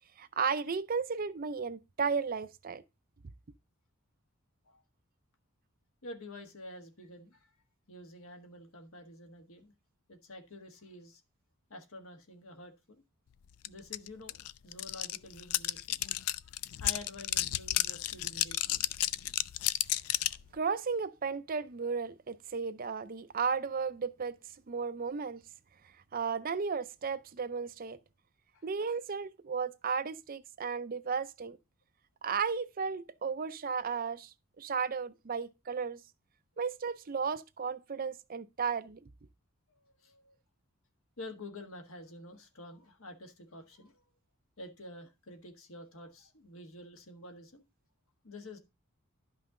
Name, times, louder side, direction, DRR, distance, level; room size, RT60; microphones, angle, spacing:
voice 1, 0.2-2.8 20.5-24.4 24.7-25.4 26.1-28.0 28.6-31.6 32.2-36.0 36.6-39.0, right 5 dB, 40° right, 0.5 m, -34 dB
voice 2, 6.0-7.5 7.9-9.7 10.1-11.2 11.7-13.0 13.7-14.4 14.6-16.2 16.8-18.8 28.5-28.6 39.9-40.4 41.2-44.1 44.6-47.6 48.2-48.6, left 1 dB, 70° left, 1.5 m, -49 dB
sound 1, 13.6-13.7 13.9-20.4, left 15 dB, 85° left, 0.4 m, -32 dB
11.5 x 5.7 x 3.7 m
head